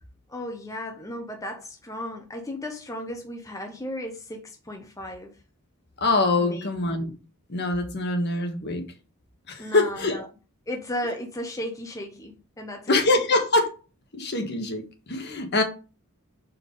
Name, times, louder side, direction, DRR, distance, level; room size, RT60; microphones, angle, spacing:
voice 1, 0.3-5.3 6.4-6.7 9.6-10.3 10.7-13.3, left 1 dB, 15° left, 0.8 m, -35 dB
voice 2, 6.0-7.1 7.5-8.9 9.5-10.2 12.9-13.8 14.1-15.6, left 2 dB, 50° left, 1.4 m, -24 dB
5.7 x 4.6 x 5.2 m
head